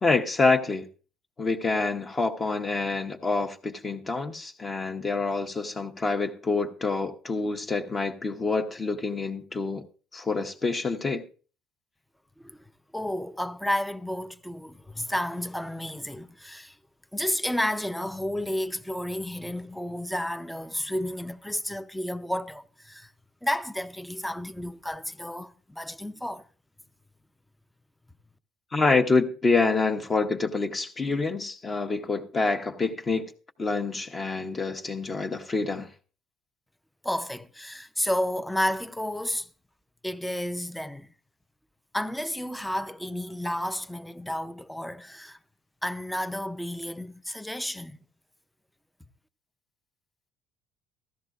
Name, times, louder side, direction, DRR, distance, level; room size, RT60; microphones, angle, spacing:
voice 1, 0.0-0.8 1.4-9.8 10.1-11.2 28.7-33.3 33.6-35.9, left 3 dB, 25° left, 1.0 m, -27 dB
voice 2, 12.9-16.8 17.1-23.1 23.4-26.4 37.0-39.5 40.0-41.1 41.9-45.4 45.8-48.0, left 1 dB, 5° left, 0.6 m, -31 dB
15.5 x 13.0 x 2.5 m
cardioid pair, 110°, 0 cm